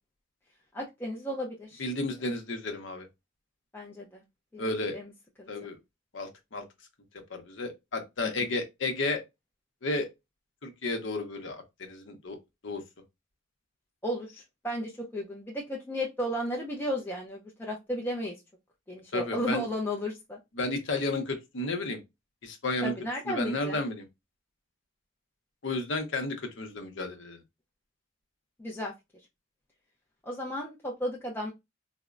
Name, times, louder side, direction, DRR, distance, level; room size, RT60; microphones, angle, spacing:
voice 1, 0.7-1.9 3.7-4.2 4.5-5.1 5.4-5.7 8.2-8.5 14.0-18.4 18.9-20.4 22.8-23.8 28.6-28.9 30.2-31.5, equal, 10° left, 0.4 m, -34 dB
voice 2, 1.8-3.1 4.6-5.0 5.5-5.8 6.1-6.6 7.3-9.2 9.8-10.1 10.6-12.4 12.6-12.8 19.1-19.6 20.6-22.0 22.4-22.9 23.3-24.0 25.6-27.4, left 2 dB, 70° left, 0.7 m, -32 dB
4.2 x 2.0 x 2.4 m
head